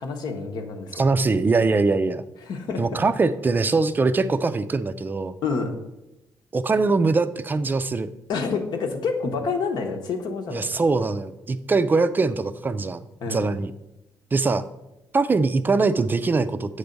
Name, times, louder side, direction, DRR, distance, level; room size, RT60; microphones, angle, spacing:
voice 1, 0.0-1.0 2.4-2.8 5.4-5.7 8.3-10.8 13.2-13.5, left 4 dB, 70° left, 4 dB, 1.0 m, -28 dB
voice 2, 1.0-2.2 2.8-5.4 6.5-8.1 10.5-13.7 14.3-14.6 15.1-16.8, right 3 dB, 25° right, 12 dB, 0.4 m, -22 dB
7.8 x 3.4 x 5.2 m, 0.93 s
cardioid pair, 105°, 8 cm